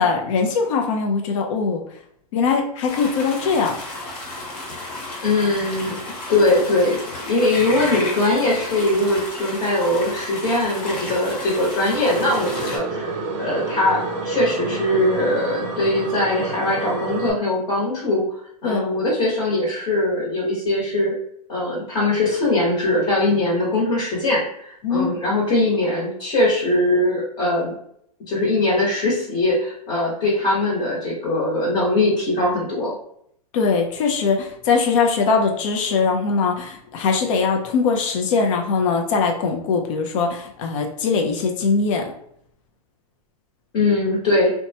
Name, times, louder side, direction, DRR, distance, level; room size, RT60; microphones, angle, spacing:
voice 1, 0.0-1.8 2.3-3.8 18.6-18.8 24.8-25.1 33.5-42.1, left 5 dB, 55° left, 2 dB, 0.6 m, -21 dB
sound 1, 2.9-12.8, left 2 dB, 80° left, 1.2 m, -33 dB
voice 2, 5.2-6.0 6.3-18.2 18.6-21.1 21.5-27.7 28.3-32.9 43.7-44.5, left 2 dB, 30° left, -5 dB, 1.2 m, -21 dB
sound 2, 11.9-17.3, right 3 dB, 30° right, 0.5 m, -29 dB
2.9 x 2.2 x 2.7 m, 0.69 s
hypercardioid pair, 145°, 20 cm